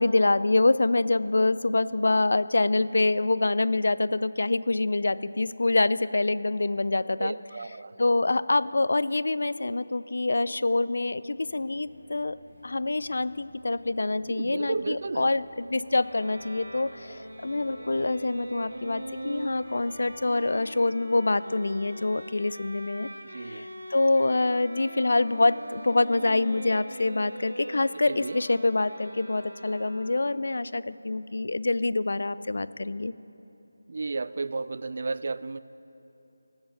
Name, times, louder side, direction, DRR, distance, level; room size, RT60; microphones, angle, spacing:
voice 1, 0.0-7.4 8.0-12.4 12.6-23.1 23.4-33.2, left 2 dB, 65° left, 17 dB, 0.3 m, -26 dB
voice 2, 7.2-7.9 14.2-15.3 23.3-23.7 27.9-28.4 33.9-35.6, right 3 dB, 50° right, 16 dB, 0.3 m, -33 dB
sound 1, 11.3-20.5, left 1 dB, 45° left, 3.1 m, -57 dB
Bowed string instrument, 15.9-30.4, right 1 dB, 75° right, 1.9 m, -42 dB
16.5 x 7.2 x 6.3 m, 3.0 s
figure-of-eight pair, 165°, 0 cm